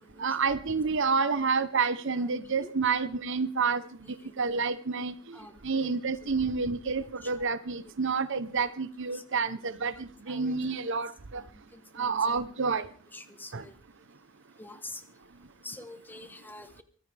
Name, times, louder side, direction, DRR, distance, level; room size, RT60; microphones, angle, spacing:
voice 1, 0.2-3.8 4.4-5.4 5.6-11.4 11.9-12.9 13.5-13.6, right 5 dB, 60° right, 14 dB, 0.9 m, -29 dB
voice 2, 5.3-5.9 9.1-9.6 10.3-10.5 11.4-11.5 11.7-12.2 12.7-12.8 13.1-13.7 14.6-15.0 15.6-16.8, left 2 dB, 10° left, 9 dB, 1.2 m, -46 dB
23.0 x 15.0 x 3.5 m, 0.44 s
head